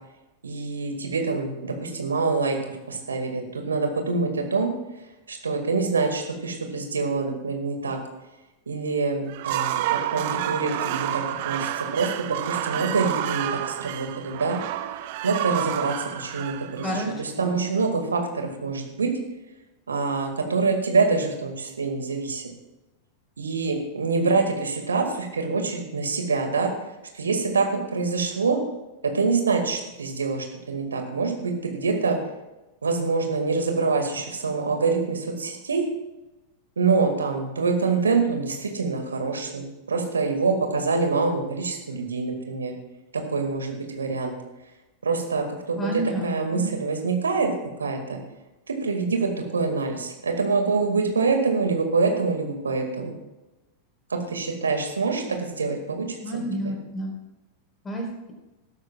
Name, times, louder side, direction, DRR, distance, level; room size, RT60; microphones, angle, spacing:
voice 1, 0.4-4.7 5.3-8.0 8.7-14.6 15.2-19.1 19.9-22.4 23.4-26.7 27.1-27.7 27.9-28.6 29.0-32.2 32.8-35.8 36.8-42.7 43.1-44.3 45.0-47.5 47.8-48.2 48.7-53.2 54.1-56.7, right 4 dB, 75° right, 4 dB, 2.0 m, -25 dB
sound 1, 9.3-17.4, right 13 dB, 50° right, 0.7 m, -29 dB
voice 2, 45.8-46.7 56.2-57.1 57.8-58.3, right 1 dB, 15° left, 0 dB, 4.3 m, -30 dB
19.0 x 12.5 x 2.4 m, 1.0 s
figure-of-eight pair, 90°, 0 cm